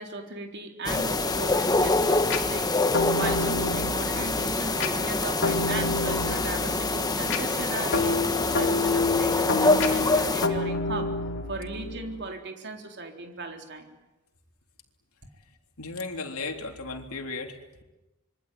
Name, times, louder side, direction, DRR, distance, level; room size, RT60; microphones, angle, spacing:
voice 1, 0.0-2.7 3.2-11.1 11.5-13.9, right 3 dB, 50° right, 3 dB, 3.8 m, -37 dB
sound 1, 0.8-10.5, left 2 dB, 15° left, 1.5 m, -26 dB
sound 2, 1.6-12.2, left 3 dB, 55° left, 3.1 m, -29 dB
voice 2, 15.8-17.8, left 3 dB, 75° left, 3 dB, 3.5 m, -36 dB
26.5 x 24.0 x 9.3 m, 1.0 s
head